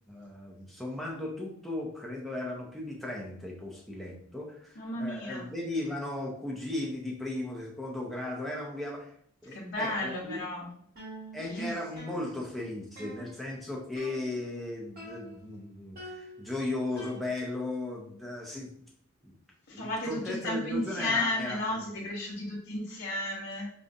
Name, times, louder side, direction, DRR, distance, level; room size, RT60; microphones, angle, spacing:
voice 1, 0.1-9.1 9.4-10.4 11.3-18.7 19.2-19.4 19.7-21.6, left 2 dB, ahead, -2 dB, 0.7 m, -36 dB
voice 2, 4.8-5.5 9.5-10.7 11.4-11.7 19.7-23.7, left 1 dB, 55° left, -6 dB, 0.7 m, -33 dB
sound 1, 10.0-10.7 11.0-12.6 13.0-13.5 14.0-14.6 15.0-15.6 16.0-17.7, right 1 dB, 45° right, 1.3 m, -47 dB
5.2 x 2.3 x 2.5 m, 0.63 s
head